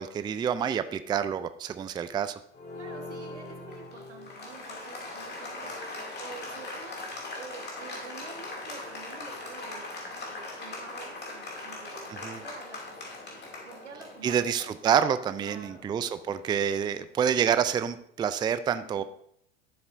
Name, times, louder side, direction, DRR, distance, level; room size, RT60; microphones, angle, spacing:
voice 1, 0.0-2.3 12.2-12.4 14.2-19.0, right 8 dB, 15° right, 13 dB, 0.4 m, -27 dB
Applause, 2.5-16.9, left 2 dB, 30° left, 2.6 m, -41 dB
voice 2, 2.7-5.7 6.1-7.0 7.4-14.6 15.4-15.9 18.8-19.0, right 5 dB, 90° right, 3 dB, 1.5 m, -48 dB
12.0 x 7.1 x 2.6 m, 0.69 s
hypercardioid pair, 80°, 34 cm